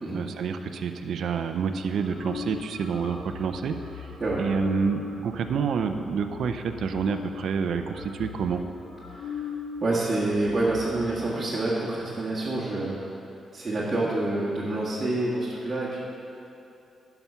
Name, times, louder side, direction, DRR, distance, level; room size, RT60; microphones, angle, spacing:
voice 1, 0.1-4.1 4.4-8.6, right 6 dB, 70° right, 7 dB, 0.5 m, -28 dB
sound 1, 1.8-9.7 10.0-10.1 10.3-11.1, left 6 dB, 85° left, 1.6 m, -39 dB
voice 2, 9.1-9.5 9.8-13.0 13.5-16.0, right 2 dB, 25° right, -9 dB, 1.8 m, -27 dB
11.0 x 5.9 x 5.7 m, 2.8 s
cardioid pair, 110°, 0 cm